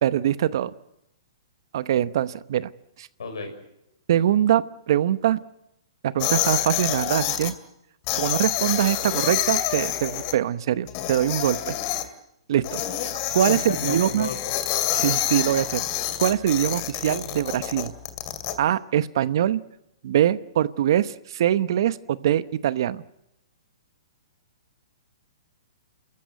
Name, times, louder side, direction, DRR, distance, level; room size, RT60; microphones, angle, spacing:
voice 1, 0.0-0.7 1.7-2.7 3.0-3.1 4.1-5.4 6.0-7.5 8.1-11.7 12.5-14.3 14.9-15.8 16.2-17.9 18.6-19.6 20.0-23.0, right 11 dB, 60° right, 15 dB, 0.9 m, -23 dB
voice 2, 3.2-3.5 13.4-14.4, left 4 dB, 80° left, 6 dB, 6.0 m, -31 dB
sound 1, 6.2-7.5 8.1-10.3 10.9-12.0 12.6-18.5, left 12 dB, 40° left, 2.5 m, -27 dB
28.0 x 14.5 x 9.3 m, 0.84 s
hypercardioid pair, 130°, 3 cm